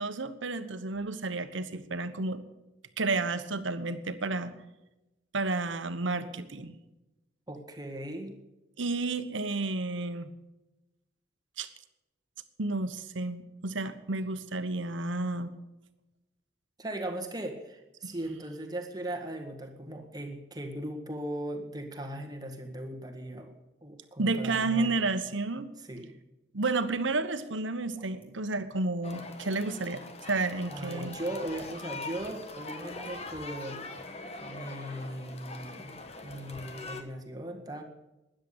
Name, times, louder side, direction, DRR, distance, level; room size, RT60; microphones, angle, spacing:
voice 1, 0.0-2.4 3.0-4.5 5.3-6.8 8.8-10.3 11.6-11.7 12.6-15.5 24.2-25.7 26.5-31.1, right 3 dB, 75° right, 10 dB, 1.2 m, -31 dB
voice 2, 7.5-8.4 16.8-23.5 23.8-25.0 25.8-26.1 30.7-33.8 34.4-36.0 36.2-37.8, right 1 dB, 20° right, 3 dB, 1.7 m, -38 dB
sound 1, 27.9-28.3 29.4-29.9 30.9-31.2 32.1-32.3 32.7-33.1, right 1 dB, 10° left, 2.5 m, -49 dB
sound 2, 29.0-37.0, left 3 dB, 30° left, 1.2 m, -43 dB
13.0 x 10.0 x 8.2 m, 0.99 s
head